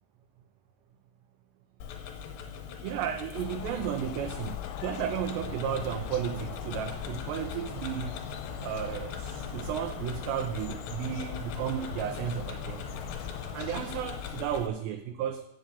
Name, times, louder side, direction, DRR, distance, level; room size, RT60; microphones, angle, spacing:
Tick-tock, 1.8-14.7, left 7 dB, 70° left, 2.9 m, -43 dB
voice 1, 2.8-8.2 8.6-13.1 13.5-15.5, right 9 dB, 80° right, 6 dB, 2.5 m, -34 dB
sound 1, 3.3-14.4, left 10 dB, 90° left, 3.1 m, -40 dB
sound 2, 5.3-13.7, right 1 dB, 50° right, 1.9 m, -45 dB
9.1 x 7.8 x 6.9 m, 0.85 s
omnidirectional pair, 5.5 m